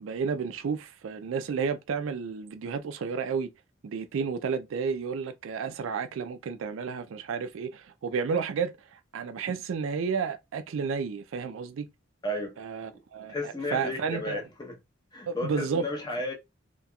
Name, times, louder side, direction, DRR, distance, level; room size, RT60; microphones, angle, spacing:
voice 1, 0.0-3.5 3.8-11.9 12.6-14.4 15.3-15.8, right 5 dB, 65° right, 0.4 m, -32 dB
voice 2, 12.2-12.6 12.9-13.0 13.3-14.8 15.1-16.3, left 1 dB, 20° left, 0.7 m, -33 dB
2.9 x 2.8 x 2.2 m
head